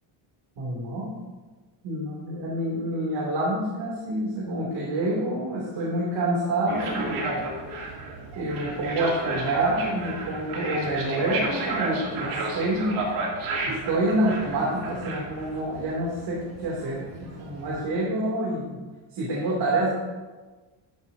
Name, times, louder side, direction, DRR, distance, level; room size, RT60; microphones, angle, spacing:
voice 1, 0.6-1.0 1.8-7.4 8.3-13.1 13.6-18.8 19.1-19.9, right 1 dB, 60° right, -5 dB, 2.9 m, -27 dB
sound 1, 6.7-17.8, right 2 dB, 80° right, 2.9 m, -33 dB
13.0 x 10.5 x 2.8 m, 1.3 s
cardioid pair, 145°, 49 cm